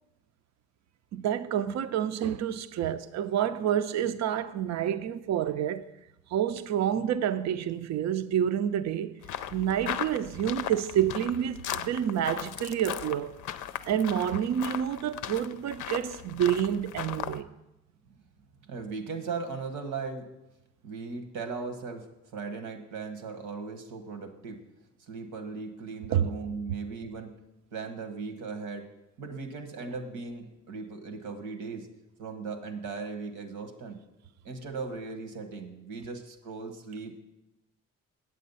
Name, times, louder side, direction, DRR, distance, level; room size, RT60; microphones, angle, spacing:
voice 1, 1.1-5.9 6.3-9.2 9.5-13.3 13.9-17.5 26.1-26.3, right 10 dB, 60° right, 0.5 m, -28 dB
sound 1, 9.2-17.4, left 10 dB, 80° left, 0.5 m, -38 dB
voice 2, 18.6-20.3 20.8-24.6 25.1-27.4 27.7-28.9 29.2-31.9 32.2-34.0 34.4-37.2, right 4 dB, 90° right, 1.3 m, -38 dB
8.5 x 7.7 x 5.5 m
cardioid pair, 90°, 30 cm